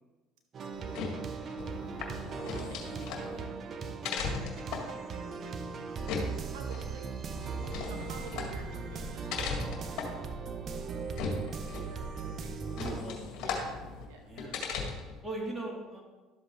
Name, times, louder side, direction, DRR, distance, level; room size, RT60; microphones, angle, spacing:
sound 1, 0.5-13.0, right 5 dB, 45° right, 0.9 m, -39 dB
sound 2, 0.7-15.2, left 5 dB, 65° left, 1.9 m, -39 dB
voice 1, 0.7-1.6 1.9-5.6 6.0-7.1 7.7-10.3 11.0-12.6 13.3-14.3, right 4 dB, 80° right, 2 dB, 1.8 m, -51 dB
voice 2, 5.9-6.2 12.7-13.4 14.3-14.6 15.2-16.0, right 2 dB, 15° right, -3 dB, 3.4 m, -40 dB
12.0 x 7.7 x 3.3 m, 1.2 s
hypercardioid pair, 75°, 0 cm